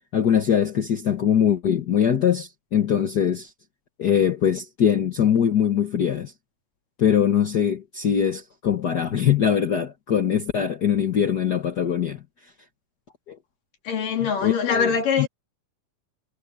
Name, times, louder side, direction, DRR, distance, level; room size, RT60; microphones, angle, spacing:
voice 1, 0.1-3.5 4.0-6.3 7.0-12.2 13.3-13.4 14.4-15.3, left 8 dB, 60° left, 1.0 m, -22 dB
voice 2, 13.8-15.3, left 6 dB, 80° left, 4.7 m, -23 dB
omnidirectional pair, 3.8 m